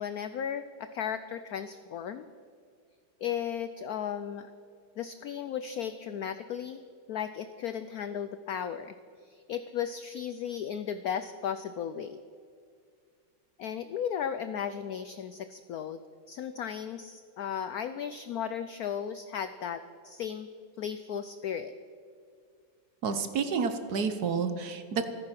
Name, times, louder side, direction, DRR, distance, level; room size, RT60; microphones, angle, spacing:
voice 1, 0.0-2.3 3.2-4.5 5.0-6.8 7.1-8.9 9.2-12.2 13.6-16.0 16.3-20.5 20.8-21.7, left 8 dB, 85° left, 12 dB, 0.8 m, -35 dB
voice 2, 23.0-25.1, right 5 dB, 55° right, 9 dB, 1.3 m, -30 dB
14.5 x 14.5 x 5.9 m, 2.2 s
omnidirectional pair, 2.2 m